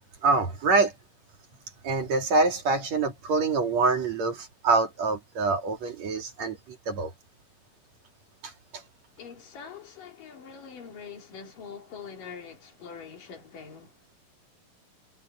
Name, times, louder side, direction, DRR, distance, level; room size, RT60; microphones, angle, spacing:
voice 1, 0.2-0.9 1.8-7.1 8.4-8.8, right 3 dB, 50° right, 3.4 m, -25 dB
voice 2, 9.2-13.9, left 6 dB, 70° left, 4.8 m, -44 dB
omnidirectional pair, 4.1 m